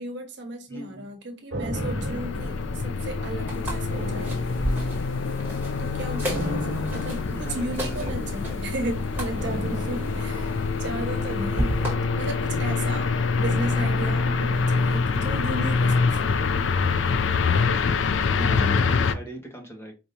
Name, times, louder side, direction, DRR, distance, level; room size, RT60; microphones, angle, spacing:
voice 1, 0.0-4.3 5.8-11.7 12.1-13.1 13.4-16.3 18.4-18.8, right 1 dB, 65° right, 1.3 m, -34 dB
voice 2, 0.7-1.1 7.3-8.3 17.7-18.0 18.6-19.9, right 1 dB, 15° left, 1.3 m, -39 dB
sound 1, 1.5-3.4 3.9-5.2 6.2-8.0 9.4-11.8 13.4-15.5 15.8-15.9, right 1 dB, 90° right, 1.2 m, -37 dB
sound 2, 1.7-19.1, left 4 dB, 75° left, 0.4 m, -25 dB
sound 3, 3.5-11.9, equal, 10° right, 1.8 m, -34 dB
5.0 x 2.9 x 2.7 m
head